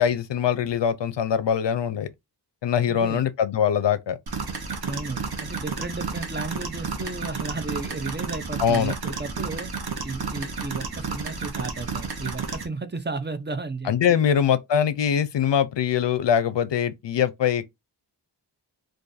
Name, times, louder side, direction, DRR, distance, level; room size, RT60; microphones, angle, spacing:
voice 1, 0.0-2.1 2.6-4.2 8.6-8.9 13.8-17.7, left 8 dB, 75° left, 0.5 m, -23 dB
voice 2, 2.9-3.3 4.9-9.7 10.0-14.2, right 3 dB, 25° right, 0.6 m, -34 dB
sound 1, 4.3-12.6, right 4 dB, 60° right, 0.9 m, -32 dB
2.5 x 2.5 x 3.8 m
wide cardioid pair, 45°, 43 cm